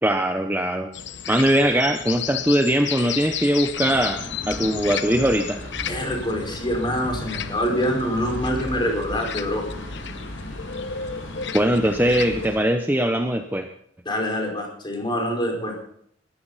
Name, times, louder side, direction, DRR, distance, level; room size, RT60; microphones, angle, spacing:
voice 1, 0.0-0.9 1.3-5.6 11.5-13.7, right 1 dB, 10° right, 5 dB, 0.9 m, -21 dB
sound 1, 0.9-12.5, left 8 dB, 60° left, 0.9 m, -34 dB
sound 2, 3.7-12.6, left 1 dB, 90° left, 7.2 m, -36 dB
voice 2, 5.9-9.6 14.0-15.7, equal, 25° left, 1 dB, 5.1 m, -25 dB
19.5 x 15.0 x 4.2 m, 0.66 s
head